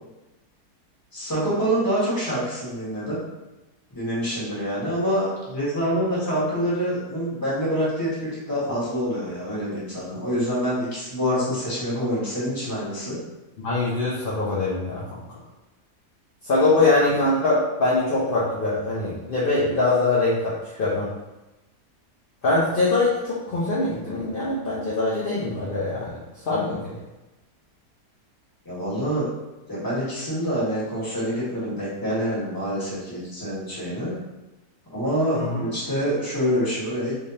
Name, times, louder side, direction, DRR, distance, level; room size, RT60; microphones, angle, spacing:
voice 1, 1.1-3.2 3.9-13.2 28.6-29.3 29.7-34.2 34.9-37.1, equal, 15° left, -9 dB, 1.2 m, -26 dB
voice 2, 13.6-15.0 16.4-21.1 22.4-26.9 35.3-35.6, left 2 dB, 55° left, -8 dB, 0.6 m, -23 dB
3.5 x 3.2 x 2.7 m, 1.0 s
omnidirectional pair, 1.7 m